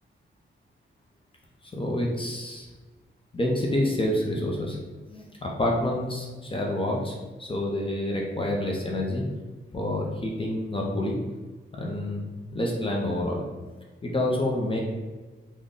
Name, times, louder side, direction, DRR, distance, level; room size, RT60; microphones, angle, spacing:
voice 1, 1.7-2.7 3.3-4.8 5.1-9.2 9.7-11.2 11.7-13.4 14.0-14.8, left 1 dB, 25° left, -1 dB, 0.5 m, -28 dB
3.8 x 2.1 x 3.6 m, 1.3 s
wide cardioid pair, 160°, 20 cm